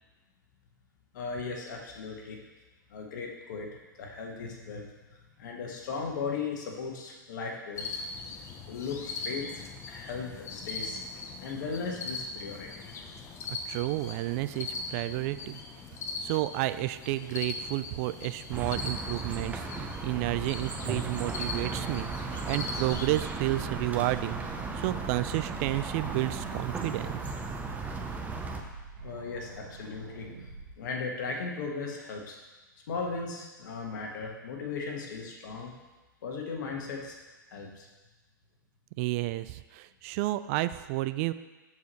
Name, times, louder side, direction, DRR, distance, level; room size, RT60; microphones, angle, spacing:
voice 1, 1.1-2.4 2.9-4.9 5.4-8.0 8.3-11.0 11.4-12.8 29.0-30.3 30.8-32.4 32.9-35.7 36.2-37.2 37.5-37.9, left 4 dB, 60° left, 0 dB, 1.7 m, -37 dB
sound 1, 7.8-23.2, left 3 dB, 25° left, 0.8 m, -40 dB
voice 2, 13.5-15.6 16.2-24.4 24.8-27.2 39.0-41.3, right 17 dB, 40° right, 14 dB, 0.4 m, -31 dB
sound 2, 18.5-28.6, right 3 dB, 15° right, 0.8 m, -36 dB
sound 3, 19.7-30.7, right 4 dB, 70° right, 1.9 m, -46 dB
13.5 x 4.8 x 3.2 m, 1.2 s
hypercardioid pair, 110°, 11 cm